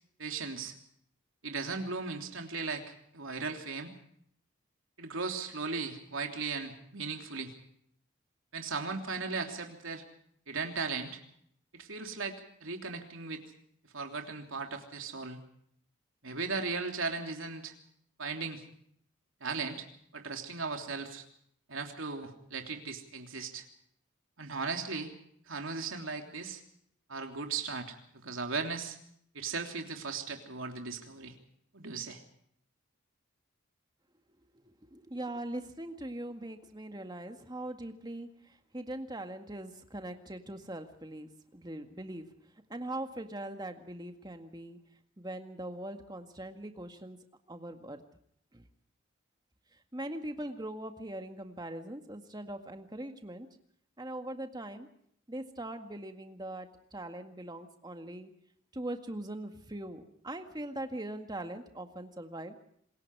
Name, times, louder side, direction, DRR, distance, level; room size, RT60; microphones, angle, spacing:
voice 1, 0.2-0.7 1.4-2.8 3.1-3.9 5.0-7.5 8.5-10.0 10.5-11.2 11.7-13.4 13.9-15.4 16.2-17.7 18.2-18.6 19.4-19.9 20.1-21.2 21.7-23.7 24.4-25.1 25.5-26.6 27.1-29.0 29.3-31.3 31.7-32.2, right 4 dB, 75° right, 4 dB, 3.2 m, -37 dB
voice 2, 34.5-42.3 42.7-44.8 45.2-47.2 47.5-48.0 48.5-48.6 49.9-53.5 54.0-54.9 55.3-58.3 58.7-62.5, right 1 dB, 20° right, 6 dB, 1.9 m, -41 dB
27.0 x 21.5 x 4.8 m, 0.67 s
head